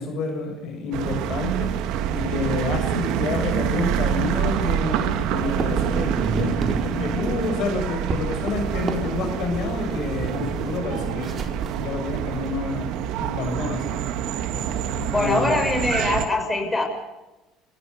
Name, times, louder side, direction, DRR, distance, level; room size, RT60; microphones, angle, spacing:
voice 1, 0.0-1.7 2.1-6.5 6.8-11.4 11.8-12.9 13.2-14.0 14.5-15.6, left 4 dB, 60° left, 4 dB, 6.6 m, -29 dB
sound 1, 0.9-16.3, right 10 dB, 70° right, 2.0 m, -27 dB
sound 2, 5.4-12.5, right 4 dB, 40° right, 4.2 m, -30 dB
voice 2, 15.1-16.8, left 2 dB, 15° left, 4 dB, 6.4 m, -23 dB
29.5 x 15.0 x 6.9 m, 1.1 s
supercardioid pair, 80°, 0 cm